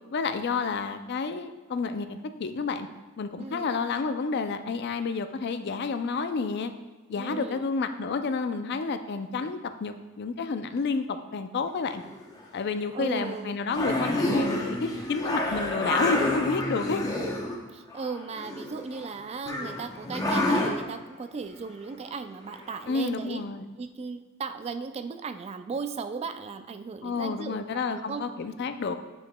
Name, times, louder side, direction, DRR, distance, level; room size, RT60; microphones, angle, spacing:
voice 1, 0.1-2.9 3.2-6.7 7.1-12.0 12.5-17.0 22.9-23.7 27.0-29.0, left 4 dB, 55° left, 9 dB, 0.4 m, -30 dB
voice 2, 3.4-3.8 7.1-7.7 12.9-13.6 17.7-23.4 23.8-28.2, right 4 dB, 30° right, 9 dB, 0.3 m, -36 dB
sound 1, 12.0-12.4 13.2-13.3 13.7-17.5 17.9-19.1 19.5-20.7 22.5-22.6 23.0-23.1, left 1 dB, 20° left, 0.8 m, -29 dB
9.4 x 4.9 x 2.2 m, 1.2 s
head